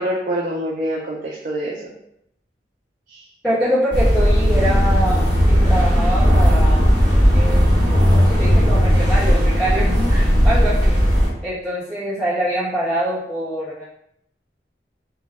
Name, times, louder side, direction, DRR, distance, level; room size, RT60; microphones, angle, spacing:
voice 1, 0.0-1.9 3.1-3.2, equal, 45° right, -3 dB, 0.3 m, -25 dB
voice 2, 3.4-7.0 7.3-7.6 8.1-11.0 11.4-13.8, equal, 5° left, -13 dB, 0.9 m, -24 dB
sound 1, 3.9-11.3, equal, 25° right, 1.0 m, -15 dB
2.2 x 2.0 x 2.9 m, 0.77 s
head